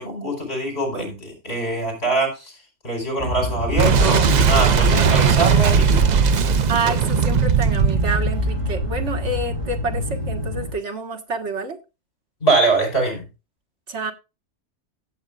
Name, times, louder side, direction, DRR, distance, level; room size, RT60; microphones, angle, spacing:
voice 1, 0.0-2.5 2.8-6.0 12.4-13.2, right 2 dB, 60° left, 4 dB, 4.6 m, -23 dB
sound 1, 3.2-10.7, left 1 dB, 25° right, 3.6 m, -27 dB
Boom, 3.8-9.3, right 6 dB, 50° right, 0.6 m, -18 dB
voice 2, 6.7-11.8 13.9-14.1, right 3 dB, 75° right, 4 dB, 1.9 m, -28 dB
16.5 x 8.0 x 2.4 m, 0.27 s
omnidirectional pair, 1.2 m